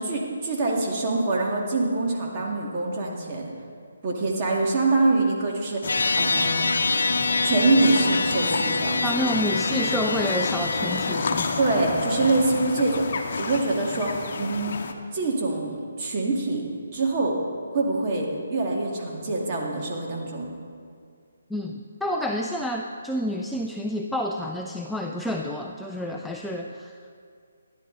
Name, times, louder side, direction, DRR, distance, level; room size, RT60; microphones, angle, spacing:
voice 1, 0.0-3.5 4.0-6.7 7.4-9.0 11.6-14.7 15.1-16.6 16.9-17.4 17.7-20.5, right 3 dB, 30° right, -2 dB, 2.2 m, -25 dB
sound 1, 5.8-14.9, left 4 dB, 55° left, 1.0 m, -30 dB
sound 2, 5.9-11.2, left 3 dB, 80° left, 0.8 m, -25 dB
voice 2, 9.0-11.5 21.5-27.0, equal, ahead, 0 dB, 0.4 m, -29 dB
14.5 x 10.5 x 4.0 m, 2.2 s
hypercardioid pair, 155°, 0 cm